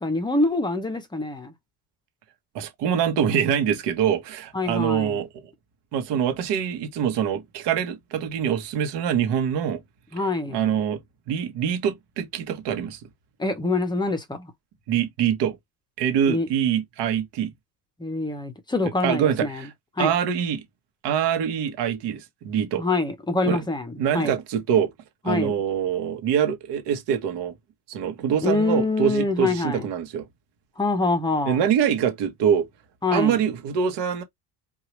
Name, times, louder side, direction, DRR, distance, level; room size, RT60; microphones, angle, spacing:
voice 1, 0.0-1.5 4.5-5.2 10.1-10.6 13.4-14.5 16.3-16.5 18.0-19.7 20.0-20.1 22.8-24.3 25.3-25.5 28.4-29.8 30.8-31.6 33.0-33.4, left 3 dB, 10° left, 0.6 m, -25 dB
voice 2, 2.5-5.4 5.9-9.8 10.5-11.0 11.3-13.0 14.9-15.6 16.0-17.5 19.0-19.7 20.0-20.6 21.0-22.8 23.5-23.6 24.0-24.9 25.2-27.5 27.9-30.3 31.5-32.7 33.1-34.2, right 8 dB, 65° right, 1.1 m, -24 dB
4.6 x 2.4 x 3.0 m
cardioid pair, 170°, 44 cm